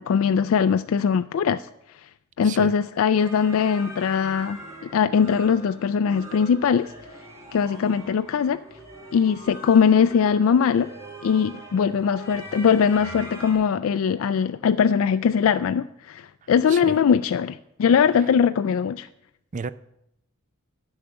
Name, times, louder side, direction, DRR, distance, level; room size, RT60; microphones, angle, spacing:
voice 1, 0.0-1.6 2.4-4.6 4.9-6.9 7.5-8.6 9.1-10.9 11.2-19.1, left 7 dB, 70° left, 0.3 m, -21 dB
voice 2, 2.4-2.7 16.7-17.0 19.5-19.7, right 5 dB, 35° right, 0.4 m, -32 dB
sound 1, 3.2-13.5, right 1 dB, 15° right, 3.8 m, -42 dB
10.5 x 6.4 x 8.8 m
head